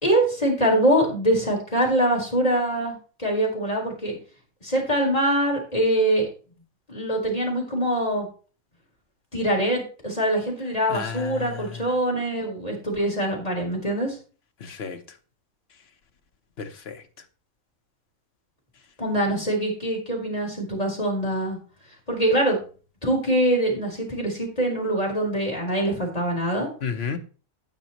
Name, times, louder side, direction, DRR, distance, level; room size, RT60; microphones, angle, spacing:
voice 1, 0.0-4.2 4.6-6.3 6.9-8.3 9.3-14.2 19.0-21.6 22.1-22.6 23.0-26.7, right 1 dB, 25° left, 4.2 m, -24 dB
voice 2, 10.9-11.8 14.6-15.0 16.6-17.0 26.8-27.2, left 6 dB, 50° left, 1.2 m, -32 dB
18.0 x 6.2 x 3.0 m
omnidirectional pair, 1.5 m